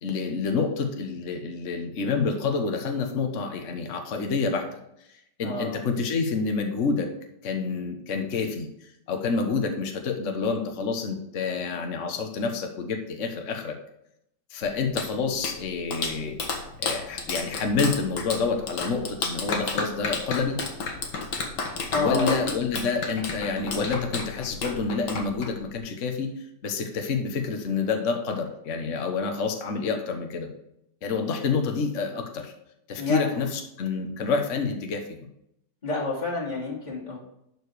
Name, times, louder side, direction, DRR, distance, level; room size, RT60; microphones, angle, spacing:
voice 1, 0.0-4.8 5.4-7.1 7.4-8.7 9.1-13.7 14.5-16.4 16.8-20.6 21.9-26.4 26.6-30.5 31.0-32.5 32.9-35.2, left 4 dB, 50° left, 4 dB, 1.4 m, -28 dB
voice 2, 5.4-5.8 21.9-22.6 33.0-33.3 35.8-37.2, left 2 dB, 25° left, -6 dB, 3.0 m, -29 dB
Clapping, 14.6-25.8, left 4 dB, 80° left, 2.0 m, -32 dB
11.5 x 5.1 x 4.8 m, 0.78 s
omnidirectional pair, 1.9 m